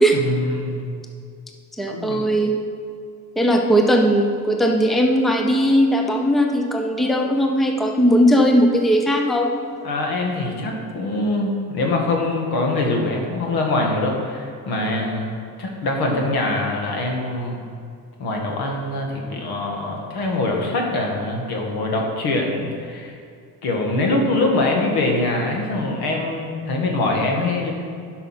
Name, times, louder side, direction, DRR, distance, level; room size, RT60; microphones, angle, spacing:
voice 1, 0.2-1.0 1.9-2.2 9.8-15.3 15.6-17.6 18.2-23.1 23.6-27.7, left 2 dB, 80° left, 0 dB, 1.9 m, -23 dB
voice 2, 1.8-2.5 3.4-9.6, equal, ahead, 2 dB, 0.6 m, -18 dB
11.0 x 5.5 x 5.8 m, 2.3 s
cardioid pair, 135°, 37 cm